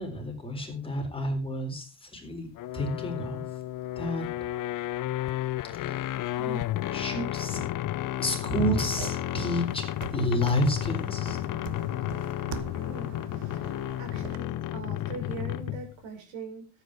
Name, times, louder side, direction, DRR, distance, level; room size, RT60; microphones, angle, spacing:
voice 1, 0.0-2.5 2.7-3.4 4.0-4.2 5.7-6.0 6.4-6.6 6.9-7.6 8.2-9.8 10.1-11.4, equal, 10° left, 1 dB, 3.9 m, -30 dB
sound 1, 2.6-15.9, left 14 dB, 45° left, 0.6 m, -32 dB
sound 2, 8.9-14.4, right 8 dB, 65° right, 1.4 m, -43 dB
voice 2, 12.5-13.7 14.0-16.7, right 4 dB, 85° right, 4 dB, 5.2 m, -42 dB
13.5 x 9.0 x 4.8 m, 0.34 s
cardioid pair, 145°, 45 cm